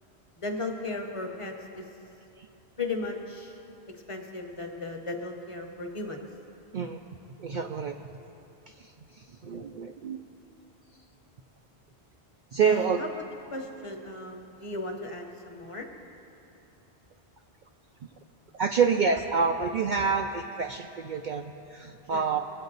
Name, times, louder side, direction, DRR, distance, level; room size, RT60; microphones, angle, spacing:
voice 1, 0.4-1.9 2.8-3.6 3.9-6.3 12.6-13.1 13.5-15.9 22.1-22.3, left 3 dB, 30° left, 2 dB, 1.1 m, -36 dB
voice 2, 7.4-8.0 8.8-10.2 12.5-13.0 18.5-22.4, right 5 dB, 55° right, 3 dB, 0.6 m, -27 dB
21.5 x 8.4 x 4.0 m, 2.8 s
omnidirectional pair, 1.1 m